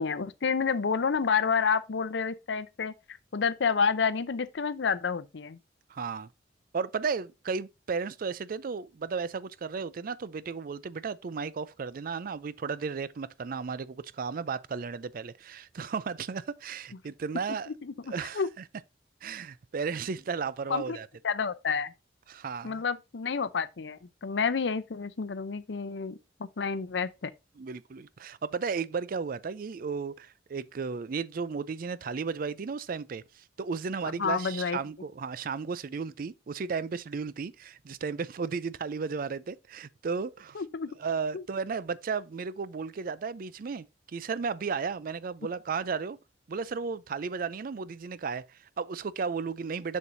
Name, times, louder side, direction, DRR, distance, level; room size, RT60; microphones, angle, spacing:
voice 1, 0.0-5.6 17.5-18.5 20.7-21.0 21.2-21.9 22.6-27.3 34.2-34.8 40.5-41.0 41.3-41.4, left 5 dB, 70° left, 0.6 m, -29 dB
voice 2, 5.9-6.3 6.7-17.7 18.1-18.4 19.2-21.1 22.3-22.8 27.6-40.6 41.0-46.2 46.5-50.0, right 5 dB, 50° right, 0.4 m, -34 dB
7.0 x 6.4 x 2.6 m
head